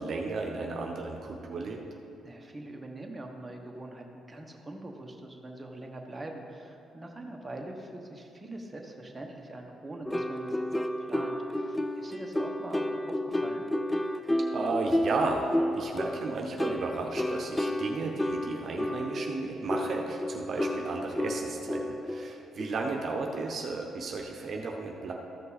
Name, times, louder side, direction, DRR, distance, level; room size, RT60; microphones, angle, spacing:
voice 1, 0.0-1.8 14.5-25.1, right 3 dB, 55° right, 1 dB, 0.8 m, -34 dB
voice 2, 2.2-13.7, right 1 dB, 15° right, 1 dB, 1.1 m, -43 dB
sound 1, 10.0-23.0, left 1 dB, 10° left, 0.4 m, -32 dB
13.5 x 5.3 x 4.1 m, 2.7 s
cardioid pair, 90°, 0 cm